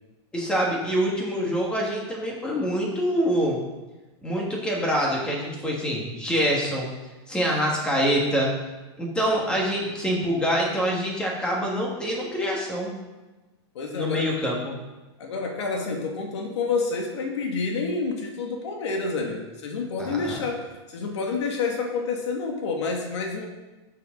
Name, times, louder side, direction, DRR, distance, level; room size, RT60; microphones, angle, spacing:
voice 1, 0.3-3.6 4.2-6.9 7.3-8.5 9.0-12.9 13.9-14.8 20.0-20.4, equal, 5° left, -2 dB, 1.7 m, -25 dB
voice 2, 13.8-14.2 15.2-23.5, left 4 dB, 90° left, 1 dB, 1.9 m, -28 dB
11.5 x 7.5 x 3.8 m, 1.1 s
supercardioid pair, 175°, 14 cm